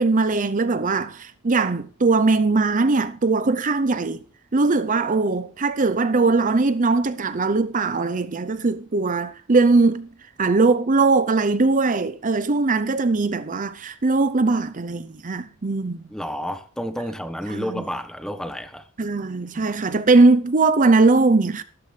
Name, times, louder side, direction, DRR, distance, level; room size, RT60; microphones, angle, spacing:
voice 1, 0.0-4.2 4.5-10.1 10.4-16.0 17.5-17.8 19.0-21.6, right 3 dB, 35° right, 0.6 m, -20 dB
voice 2, 16.1-18.8 19.6-19.7, equal, 5° left, 1.0 m, -30 dB
13.0 x 12.5 x 3.3 m
head